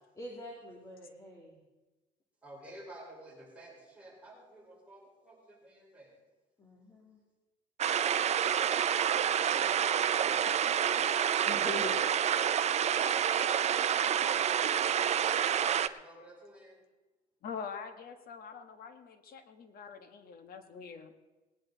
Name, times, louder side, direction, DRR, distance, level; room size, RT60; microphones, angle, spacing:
voice 1, 0.2-1.6 6.6-7.2 9.5-9.7 11.4-12.0, left 1 dB, 20° left, -3 dB, 2.5 m, -43 dB
voice 2, 2.4-6.1 9.3-10.7 11.0-11.2 15.5-16.8, right 1 dB, 10° right, -4 dB, 4.8 m, -53 dB
sound 1, 7.8-15.9, right 9 dB, 40° right, 0.6 m, -28 dB
voice 3, 17.4-21.1, left 6 dB, 60° left, 7 dB, 1.4 m, -44 dB
19.5 x 10.0 x 4.0 m, 1.2 s
cardioid pair, 110°, 17 cm